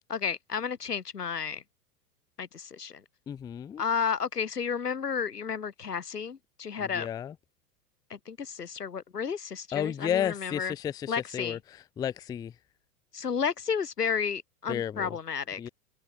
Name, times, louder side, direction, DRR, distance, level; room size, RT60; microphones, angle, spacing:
voice 1, 0.1-1.6 2.4-3.0 3.8-7.1 8.1-10.7 11.1-11.6 13.1-15.6, left 6 dB, 90° left, 2.2 m, -32 dB
voice 2, 3.3-3.8 6.8-7.3 9.7-11.6 12.0-12.5 14.7-15.2 15.6-15.7, left 9 dB, 10° left, 0.4 m, -32 dB
hypercardioid pair, 100°, 46 cm